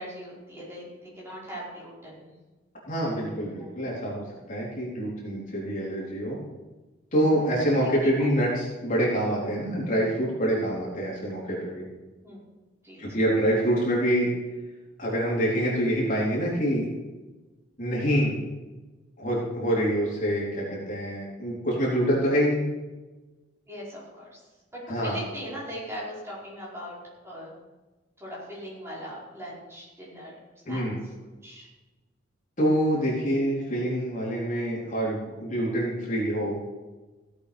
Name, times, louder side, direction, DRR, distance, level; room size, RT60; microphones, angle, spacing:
voice 1, 0.0-2.3 3.5-3.7 7.3-8.3 12.2-12.4 12.8-13.1 23.7-24.4 24.7-27.5 28.2-30.4 30.6-31.1 31.4-31.7, equal, 15° right, -7 dB, 5.1 m, -40 dB
voice 2, 2.9-6.4 7.1-11.9 13.0-14.3 15.0-16.8 17.8-18.4 19.2-22.6 24.9-25.2 30.7-31.0 32.6-36.6, equal, 40° left, -5 dB, 3.9 m, -26 dB
16.5 x 8.3 x 5.2 m, 1.2 s
head